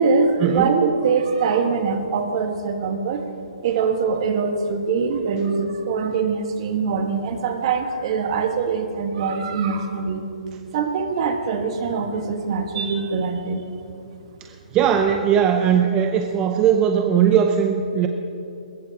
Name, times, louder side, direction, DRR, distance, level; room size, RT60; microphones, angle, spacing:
voice 1, 0.0-3.2 3.6-10.2 10.7-13.6, right 5 dB, 40° right, 5 dB, 1.5 m, -23 dB
voice 2, 14.7-18.1, right 8 dB, 20° right, 5 dB, 0.6 m, -19 dB
22.0 x 20.0 x 2.9 m, 2.8 s
hypercardioid pair, 160°, 4 cm